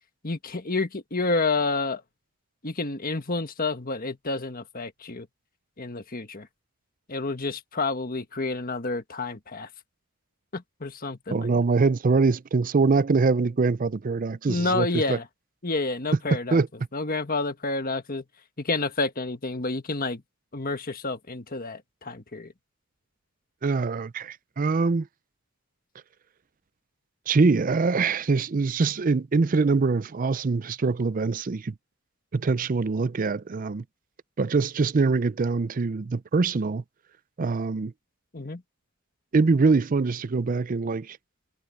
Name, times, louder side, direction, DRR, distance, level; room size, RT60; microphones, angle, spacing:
voice 1, 0.2-2.0 2.6-5.3 5.8-6.5 7.1-9.7 10.5-11.5 14.5-15.3 15.6-16.6 16.9-18.2 18.6-20.2 20.5-22.5 38.3-38.6, left 3 dB, 45° left, 1.5 m, -29 dB
voice 2, 11.3-15.2 16.5-16.7 23.6-25.1 27.3-31.7 32.3-33.8 34.4-36.8 37.4-37.9 39.3-41.2, right 4 dB, 40° right, 0.4 m, -23 dB
head